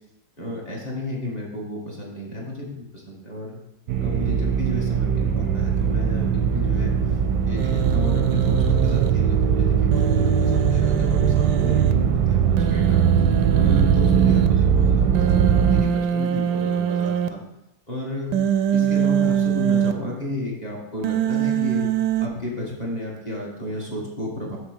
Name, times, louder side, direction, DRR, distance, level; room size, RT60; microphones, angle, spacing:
voice 1, 0.4-3.6 4.0-6.9 7.5-12.4 12.7-13.1 13.5-17.4 17.9-18.4 18.7-21.9 22.2-24.6, left 1 dB, 20° left, -3 dB, 1.6 m, -32 dB
sound 1, 3.9-15.8, right 8 dB, 90° right, 1.4 m, -20 dB
Human voice, 7.6-9.1 9.9-11.9 12.6-14.5 15.1-17.3 18.3-19.9 21.0-22.3, right 8 dB, 75° right, 1.0 m, -24 dB
6.7 x 4.2 x 6.3 m, 0.86 s
omnidirectional pair, 2.0 m